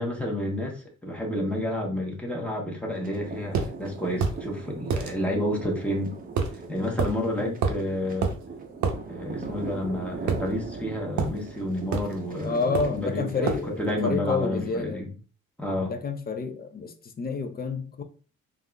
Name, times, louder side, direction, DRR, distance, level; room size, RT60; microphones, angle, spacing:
voice 1, 0.0-6.1 6.7-8.3 9.1-15.1 15.6-15.9, left 1 dB, 5° left, 0.9 m, -30 dB
sound 1, 2.9-14.8, right 4 dB, 30° right, 0.6 m, -40 dB
sound 2, 3.5-3.7 4.2-4.4 4.9-5.1 6.4-6.6 7.0-7.1 7.6-7.9 8.2-8.4 8.8-9.0 10.3-10.8 11.2-11.4 11.9-12.2 12.7-13.0 13.5-13.7, right 5 dB, 70° right, 0.7 m, -27 dB
voice 2, 12.4-15.0 15.9-18.0, left 4 dB, 30° left, 0.5 m, -29 dB
3.4 x 2.4 x 2.2 m
cardioid pair, 90°, 30 cm